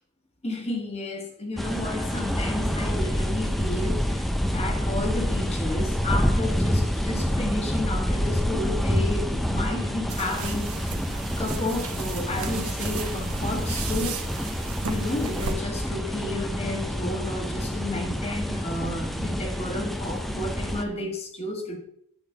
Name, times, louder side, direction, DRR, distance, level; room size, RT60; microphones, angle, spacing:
voice 1, 0.4-14.2 14.9-21.8, left 2 dB, 30° left, 2 dB, 1.6 m, -32 dB
sound 1, 1.6-20.8, equal, ahead, 0.5 m, -27 dB
sound 2, 10.1-15.5, right 4 dB, 85° right, 1.1 m, -34 dB
9.5 x 3.9 x 6.8 m, 0.70 s
head